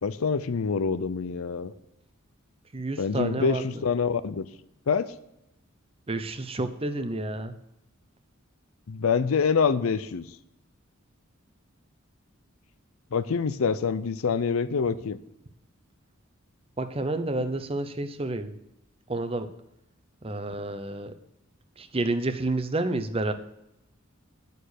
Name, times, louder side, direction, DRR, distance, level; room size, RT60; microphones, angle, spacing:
voice 1, 0.0-1.7 3.0-4.5 4.9-5.1 8.9-10.2 13.1-15.2, left 5 dB, 85° left, 13 dB, 0.5 m, -26 dB
voice 2, 2.7-3.8 6.1-7.5 16.8-18.5 19.1-19.5 20.2-21.1 21.8-23.3, right 2 dB, 25° right, 9 dB, 0.7 m, -29 dB
9.5 x 6.7 x 6.5 m, 0.86 s
head